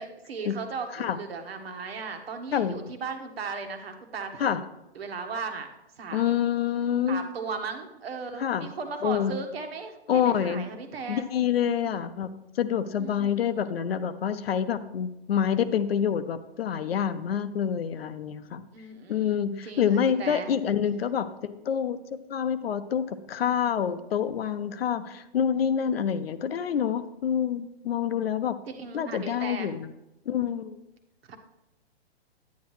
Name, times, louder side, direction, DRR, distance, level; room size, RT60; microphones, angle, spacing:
voice 1, 0.0-4.6 4.9-5.7 6.0-6.4 7.1-11.3 13.0-13.3 13.6-13.8 18.7-20.5 28.7-29.7 31.3-31.4, right 4 dB, 65° right, 5 dB, 1.5 m, -37 dB
voice 2, 2.5-2.9 4.4-4.6 6.1-7.2 8.4-8.7 9.0-9.3 10.1-10.6 11.1-12.3 12.6-18.6 19.1-28.6 28.9-29.9 30.3-30.8, left 8 dB, 65° left, 12 dB, 0.8 m, -27 dB
10.0 x 9.5 x 3.2 m, 0.91 s
hypercardioid pair, 135°, 32 cm